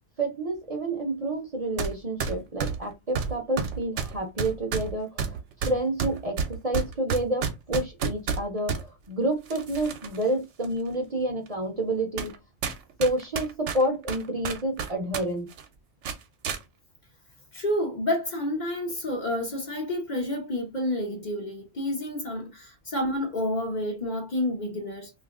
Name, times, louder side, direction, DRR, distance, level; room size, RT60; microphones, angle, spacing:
voice 1, 0.2-12.3 13.0-15.5, right 1 dB, 40° right, 0.7 m, -29 dB
sound 1, 1.8-1.9 2.2-8.8 9.5-10.2 10.6-10.7 11.5-11.6 12.2-12.4 12.6-15.2 15.5-15.7 16.0-16.6, right 6 dB, 85° right, 1.0 m, -30 dB
voice 2, 17.5-25.1, left 1 dB, 45° left, 0.8 m, -29 dB
2.7 x 2.5 x 3.5 m
omnidirectional pair, 1.2 m